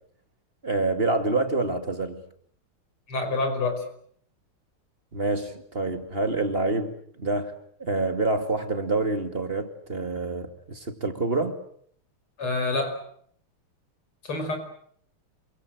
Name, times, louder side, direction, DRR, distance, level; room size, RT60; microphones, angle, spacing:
voice 1, 0.6-2.2 5.1-7.5 7.8-11.6, right 2 dB, 25° right, 2.4 m, -27 dB
voice 2, 3.1-3.8 12.4-13.0 14.2-14.6, left 3 dB, 90° left, 6.1 m, -27 dB
28.0 x 24.5 x 7.9 m
omnidirectional pair, 2.3 m